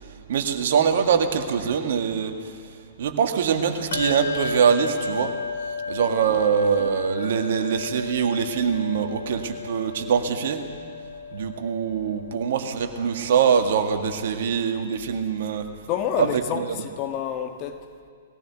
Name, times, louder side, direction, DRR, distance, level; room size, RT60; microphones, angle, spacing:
voice 1, 0.3-2.3 3.0-5.3 5.9-10.6 11.3-15.7 16.2-16.8, right 7 dB, 55° right, 1.9 m, -23 dB
Bell, 3.9-13.9, left 5 dB, 65° left, 2.6 m, -34 dB
voice 2, 15.9-17.8, left 9 dB, 30° left, 1.5 m, -28 dB
20.0 x 17.0 x 8.3 m
figure-of-eight pair, 115°, 0 cm